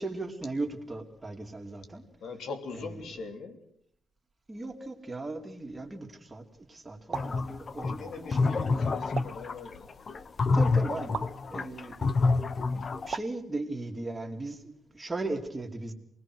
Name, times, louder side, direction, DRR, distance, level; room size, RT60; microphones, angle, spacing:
voice 1, 0.0-2.0 2.8-3.0 4.5-6.4 6.7-8.9 10.5-12.1 12.7-15.9, right 2 dB, 20° right, 4 dB, 2.7 m, -37 dB
voice 2, 2.2-3.6 7.8-9.9, left 4 dB, 75° left, 6 dB, 3.0 m, -41 dB
sound 1, 7.1-13.2, left 4 dB, 40° left, 0.9 m, -28 dB
sound 2, 7.1-7.4 9.2-9.5 11.1-11.4 13.1-13.4, right 6 dB, 50° right, 1.1 m, -36 dB
28.0 x 20.0 x 6.2 m, 0.70 s
cardioid pair, 100°, 0 cm